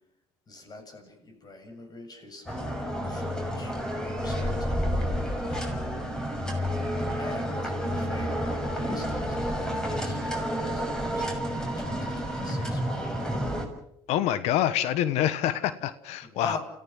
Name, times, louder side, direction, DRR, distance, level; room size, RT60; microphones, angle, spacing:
voice 1, 0.5-3.2 3.6-6.1 7.2-8.3 8.6-13.3 16.2-16.6, left 3 dB, 35° left, 6 dB, 7.9 m, -44 dB
sound 1, 2.5-13.6, equal, 5° left, 6.4 m, -30 dB
voice 2, 14.1-16.6, left 11 dB, 75° left, 14 dB, 1.3 m, -26 dB
29.5 x 15.5 x 7.6 m, 0.78 s
supercardioid pair, 75°, 11 cm